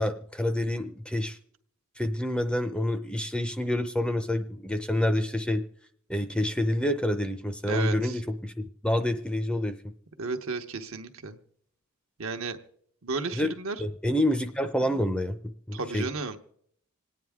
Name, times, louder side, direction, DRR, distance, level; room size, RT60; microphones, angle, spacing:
voice 1, 0.0-1.4 2.0-5.6 6.1-9.9 13.3-16.1, left 1 dB, 5° left, 8 dB, 0.5 m, -28 dB
voice 2, 7.7-8.1 10.2-11.4 12.2-12.6 13.0-13.8 15.7-16.4, right 3 dB, 75° right, 6 dB, 1.0 m, -33 dB
26.5 x 9.4 x 3.6 m, 0.66 s
head